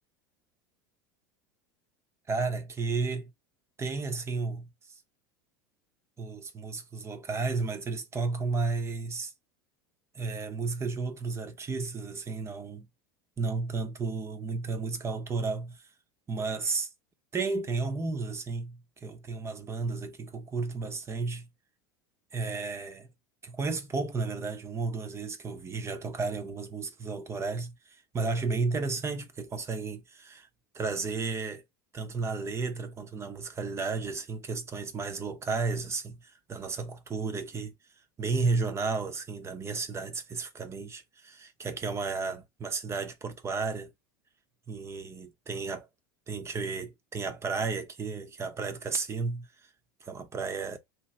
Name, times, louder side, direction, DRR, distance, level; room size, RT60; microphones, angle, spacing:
voice 1, 2.3-3.3 3.8-4.7 6.2-9.3 10.1-12.9 13.4-15.8 16.3-16.9 17.3-21.5 22.3-23.1 23.4-30.5 30.7-31.6 31.9-37.7 38.2-43.9 44.7-45.9 46.3-49.5 50.0-50.8, right 4 dB, 25° right, 0.7 m, -33 dB
2.9 x 2.2 x 3.2 m
hypercardioid pair, 90°, 11 cm